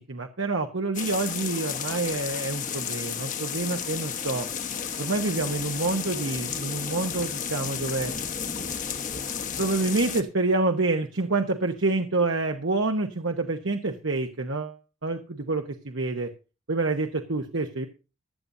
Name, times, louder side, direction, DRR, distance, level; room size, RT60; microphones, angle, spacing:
voice 1, 0.1-4.5 5.0-8.1 8.9-9.2 9.6-16.3 16.7-17.9, right 3 dB, 60° right, 4 dB, 1.1 m, -27 dB
sound 1, 0.9-10.2, left 7 dB, 35° left, 1.1 m, -32 dB
15.5 x 11.5 x 2.7 m, 0.31 s
head